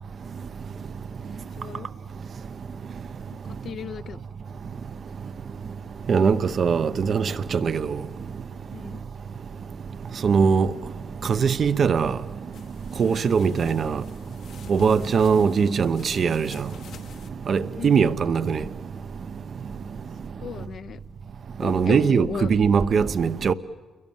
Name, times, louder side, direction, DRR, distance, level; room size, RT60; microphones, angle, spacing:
voice 1, 1.1-1.9 3.6-4.2 8.7-9.0 13.0-13.2 17.8-18.2 20.4-21.0 21.6-22.5, left 7 dB, 60° left, 0.7 m, -35 dB
voice 2, 6.1-7.9 10.2-10.7 11.2-12.2 13.0-14.0 14.7-16.5 17.5-18.6 21.6-23.5, right 6 dB, 50° right, 0.9 m, -21 dB
sound 1, 12.5-17.3, left 7 dB, 75° left, 1.5 m, -47 dB
29.0 x 23.0 x 7.3 m
cardioid pair, 90°, 0 cm